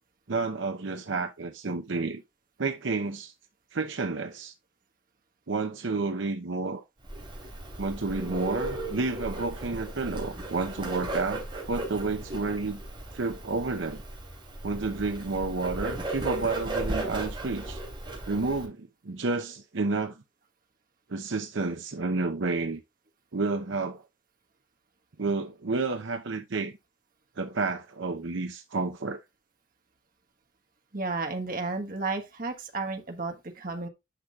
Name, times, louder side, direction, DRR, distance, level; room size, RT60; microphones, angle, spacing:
voice 1, 0.3-2.2 2.6-3.3 3.7-4.5 5.5-6.8 7.8-12.8 13.1-14.0 14.6-17.8 18.3-20.2 21.1-22.8 23.3-24.0 25.2-26.7 27.4-29.2, right 3 dB, 70° right, 0.7 m, -30 dB
Bird, 7.0-18.6, right 2 dB, 25° right, 3.3 m, -36 dB
voice 2, 30.9-33.9, right 3 dB, 45° right, 1.4 m, -32 dB
10.0 x 6.1 x 2.4 m
head